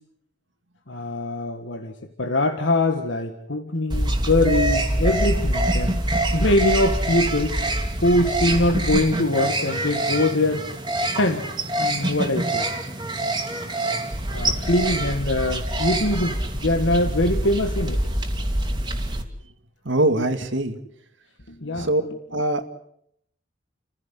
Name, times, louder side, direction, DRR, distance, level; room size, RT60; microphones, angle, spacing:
voice 1, 0.9-6.0 6.3-7.6 8.0-10.7 11.1-11.4 11.8-12.7 14.3-18.0 21.5-21.9, left 1 dB, 75° left, 6 dB, 1.7 m, -23 dB
sound 1, 3.9-19.2, right 1 dB, 25° right, 2.7 m, -25 dB
voice 2, 19.8-20.8 21.7-22.0 22.3-22.7, right 1 dB, 85° right, 8 dB, 2.2 m, -22 dB
30.0 x 15.5 x 8.3 m, 0.72 s
head